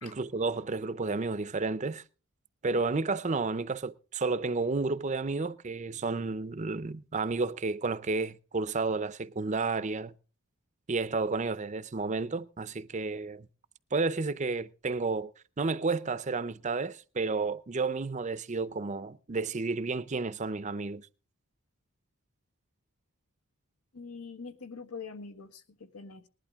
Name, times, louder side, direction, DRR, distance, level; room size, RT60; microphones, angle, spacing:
voice 1, 0.0-2.0 2.6-10.1 10.9-13.5 13.9-15.3 15.6-21.1, right 3 dB, 30° right, 0.6 m, -31 dB
voice 2, 23.9-26.3, left 4 dB, 80° left, 1.5 m, -44 dB
20.0 x 11.5 x 3.5 m
head